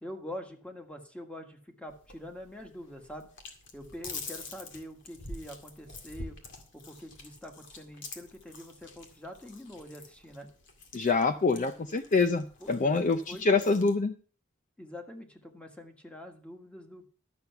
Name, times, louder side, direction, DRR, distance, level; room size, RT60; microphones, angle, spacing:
voice 1, 0.0-3.3 3.7-6.4 6.7-10.5 12.6-12.7 13.3-13.7 14.8-17.1, left 1 dB, 5° left, 4 dB, 1.6 m, -45 dB
sound 1, 1.9-13.9, left 3 dB, 60° left, 2.2 m, -47 dB
voice 2, 10.9-14.1, left 4 dB, 40° left, 9 dB, 0.5 m, -26 dB
12.5 x 6.9 x 5.8 m, 0.42 s
head